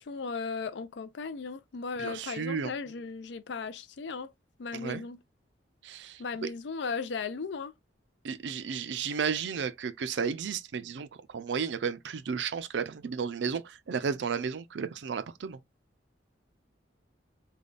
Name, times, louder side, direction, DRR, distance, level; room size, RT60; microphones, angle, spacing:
voice 1, 0.0-4.3 4.6-5.2 6.2-7.7, left 4 dB, 70° left, 0.4 m, -36 dB
voice 2, 2.0-2.7 4.7-5.0 5.8-6.2 8.2-15.6, right 6 dB, 70° right, 0.4 m, -33 dB
3.4 x 2.2 x 3.9 m
head